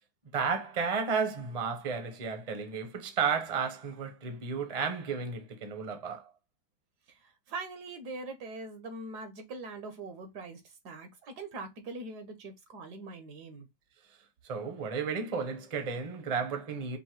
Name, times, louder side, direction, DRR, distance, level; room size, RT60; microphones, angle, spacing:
voice 1, 0.3-6.2 14.5-17.0, right 5 dB, 30° right, 0.7 m, -33 dB
voice 2, 7.1-13.7, right 3 dB, 70° right, 1.5 m, -42 dB
5.4 x 2.6 x 3.0 m
omnidirectional pair, 1.8 m